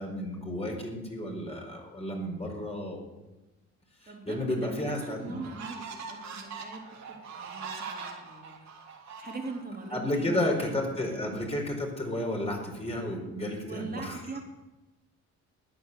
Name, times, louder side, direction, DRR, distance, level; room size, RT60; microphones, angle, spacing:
voice 1, 0.0-3.0 4.0-5.4 9.9-14.2, left 1 dB, 20° left, 0 dB, 4.7 m, -32 dB
voice 2, 4.1-8.7 9.2-11.4 13.6-14.4, right 3 dB, 30° right, 1 dB, 3.6 m, -41 dB
sound 1, 4.3-4.4 4.9-9.9, right 5 dB, 65° right, 3.3 m, -42 dB
14.0 x 9.8 x 8.2 m, 1.1 s
cardioid pair, 90°, 30 cm